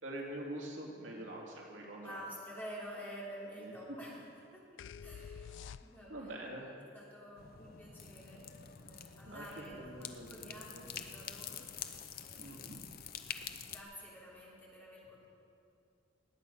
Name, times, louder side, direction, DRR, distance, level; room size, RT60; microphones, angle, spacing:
voice 1, 0.0-2.2 3.6-3.7 6.1-6.7 9.2-10.9 12.4-12.8, right 1 dB, 80° right, -2 dB, 2.6 m, -45 dB
voice 2, 2.0-4.2 4.5-4.6 5.0-6.7 6.9-11.7 12.2-12.8 13.3-15.3, equal, 10° left, -5 dB, 2.9 m, -50 dB
sound 1, 4.8-6.3, left 7 dB, 75° left, 0.4 m, -48 dB
sound 2, 7.4-13.8, left 8 dB, 50° left, 0.7 m, -47 dB
19.5 x 8.2 x 5.6 m, 2.5 s
head